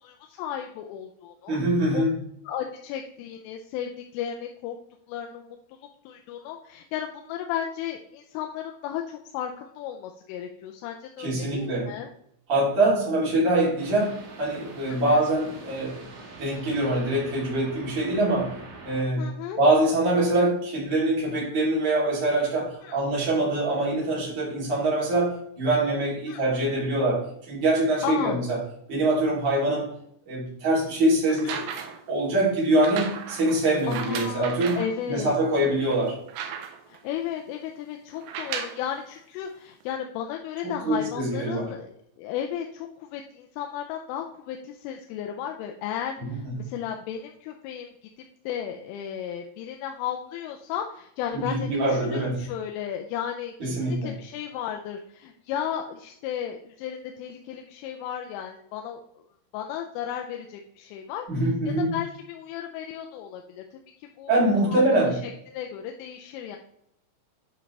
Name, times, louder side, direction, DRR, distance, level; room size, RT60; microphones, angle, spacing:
voice 1, 0.0-1.6 1.9-2.1 2.5-4.8 5.1-5.8 6.1-12.1 14.9-15.2 19.2-19.6 22.8-23.0 26.3-26.4 28.0-28.4 31.3-31.5 33.9-35.4 36.9-47.9 48.5-59.0 59.5-61.3 61.7-64.3 64.7-66.6, left 9 dB, 90° left, 3 dB, 3.2 m, -34 dB
voice 2, 1.5-2.1 11.2-11.9 12.5-16.0 16.4-18.5 18.8-19.2 19.6-28.6 28.9-29.9 30.3-31.7 32.1-36.2 40.6-41.7 46.2-46.6 51.3-52.4 53.6-54.1 61.3-61.9 64.3-65.2, right 1 dB, 30° right, -6 dB, 3.1 m, -24 dB
sound 1, 13.8-19.0, right 3 dB, 60° right, 2.6 m, -44 dB
sound 2, 31.3-32.1 32.8-34.9 35.5-35.6 35.9-37.0 38.2-38.9 39.8-39.9, right 7 dB, 75° right, 2.9 m, -35 dB
10.0 x 5.4 x 3.3 m, 0.71 s
omnidirectional pair, 5.6 m